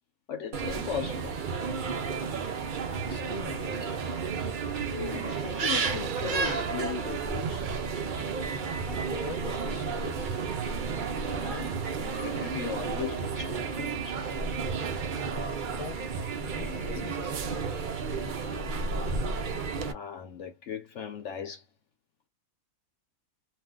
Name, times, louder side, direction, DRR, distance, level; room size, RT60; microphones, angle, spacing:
voice 1, 0.3-1.3 4.9-7.7 11.2-14.3 19.8-21.7, left 7 dB, 60° left, 0.9 m, -38 dB
sound 1, 0.5-19.9, right 5 dB, 60° right, 0.5 m, -32 dB
voice 2, 3.0-4.0 8.8-10.4 15.7-16.0 16.4-17.9 18.2-18.9, left 3 dB, 30° left, 0.7 m, -43 dB
sound 2, 5.7-8.3 9.2-9.4, right 10 dB, 85° right, 1.0 m, -46 dB
2.5 x 2.3 x 3.6 m
omnidirectional pair, 1.5 m